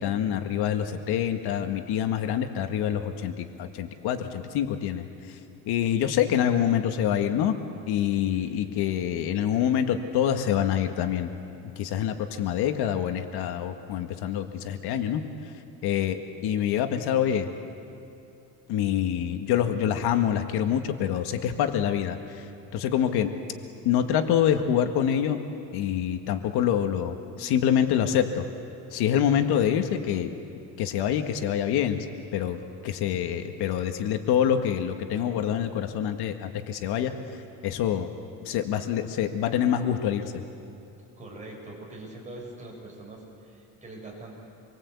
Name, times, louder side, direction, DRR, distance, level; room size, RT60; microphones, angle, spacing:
voice 1, 0.0-5.4 5.7-7.5 7.9-11.3 11.8-15.2 15.8-16.2 16.4-17.5 18.7-22.5 22.7-23.3 23.8-25.4 25.7-28.4 28.9-30.3 30.8-32.1 32.3-32.6 32.8-37.1 37.6-38.1 38.5-40.4, left 9 dB, 85° left, 6 dB, 1.8 m, -26 dB
voice 2, 8.3-8.7 41.2-44.4, right 2 dB, 20° right, -2 dB, 6.9 m, -43 dB
27.0 x 23.5 x 8.3 m, 2.8 s
cardioid pair, 150°, 38 cm